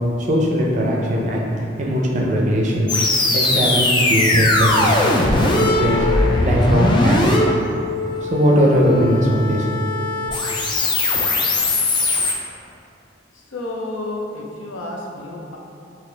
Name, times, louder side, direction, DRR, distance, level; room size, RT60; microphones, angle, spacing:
voice 1, 0.3-1.5 1.8-2.9 3.3-5.1 5.4-6.1 6.4-7.5 8.2-9.8, equal, 40° right, -2 dB, 0.5 m, -19 dB
sound 1, 2.9-12.3, left 2 dB, 25° left, 0.3 m, -19 dB
voice 2, 13.3-15.6, left 2 dB, 90° left, -1 dB, 0.6 m, -31 dB
3.9 x 2.8 x 3.3 m, 2.7 s
head